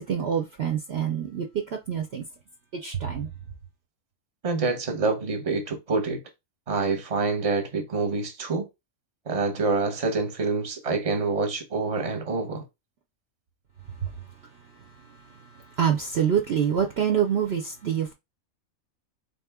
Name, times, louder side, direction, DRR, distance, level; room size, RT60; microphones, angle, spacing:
voice 1, 0.0-1.5 1.7-2.2 2.8-3.3 15.8-18.1, right 8 dB, 60° right, 0.8 m, -26 dB
voice 2, 4.4-6.2 6.7-8.7 9.3-12.6, right 4 dB, 30° right, 0.9 m, -26 dB
4.0 x 2.9 x 3.5 m
omnidirectional pair, 1.4 m